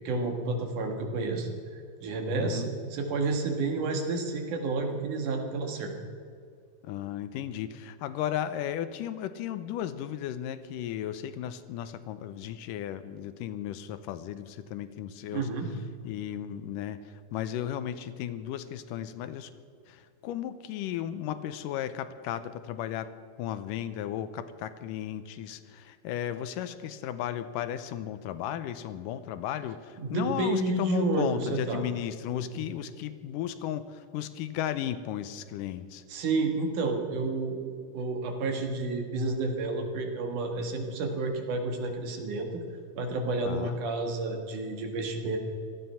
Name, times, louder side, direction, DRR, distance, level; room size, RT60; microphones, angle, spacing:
voice 1, 0.0-5.9 15.3-15.7 30.0-31.8 32.3-32.5 36.1-42.6 43.0-45.4, right 3 dB, 70° right, 3 dB, 3.1 m, -30 dB
voice 2, 2.4-2.7 6.8-15.5 16.0-19.5 19.9-23.1 23.4-36.0 43.5-43.8, left 11 dB, 85° left, 12 dB, 2.3 m, -35 dB
17.0 x 13.0 x 5.6 m, 2.2 s
omnidirectional pair, 3.8 m